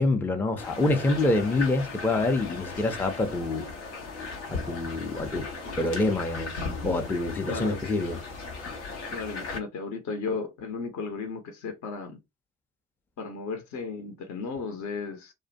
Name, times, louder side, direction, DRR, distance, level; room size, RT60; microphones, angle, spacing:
voice 1, 0.0-3.6 4.5-5.5 5.8-8.2, left 2 dB, 5° left, 0.4 m, -26 dB
sound 1, 0.6-9.6, left 3 dB, 85° left, 0.7 m, -37 dB
voice 2, 7.5-7.8 9.1-12.2 13.2-15.3, left 4 dB, 50° left, 0.7 m, -34 dB
2.4 x 2.1 x 2.6 m
hypercardioid pair, 55°, 35 cm